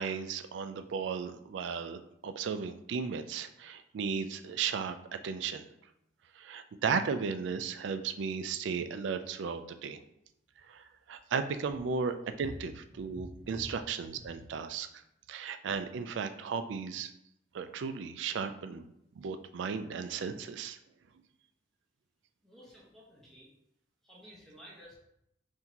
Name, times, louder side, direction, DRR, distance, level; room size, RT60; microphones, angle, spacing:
voice 1, 0.0-5.6 6.3-10.0 10.7-14.9 15.3-17.1 17.5-18.8 19.2-20.8, right 5 dB, 70° right, 10 dB, 0.3 m, -35 dB
voice 2, 22.4-23.5 24.0-24.9, equal, ahead, -6 dB, 0.8 m, -54 dB
5.7 x 2.7 x 2.9 m, 0.81 s
head